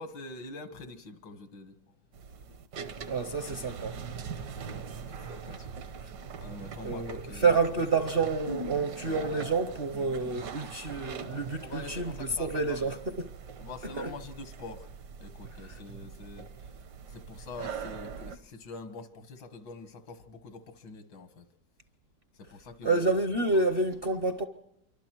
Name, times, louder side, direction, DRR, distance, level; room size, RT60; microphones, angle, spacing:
voice 1, 0.0-1.8 4.7-5.7 6.4-7.6 11.6-13.0 13.6-14.9 15.2-16.5 17.1-21.5 22.4-23.0 23.5-23.6, left 3 dB, 80° left, 2.2 m, -45 dB
sound 1, 2.1-18.4, right 5 dB, 70° right, 1.6 m, -42 dB
voice 2, 3.1-4.0 5.5-5.6 6.8-13.3 14.0-14.1 15.7-15.8 22.8-24.4, right 3 dB, 45° right, 0.8 m, -29 dB
27.0 x 24.0 x 4.6 m
omnidirectional pair, 2.0 m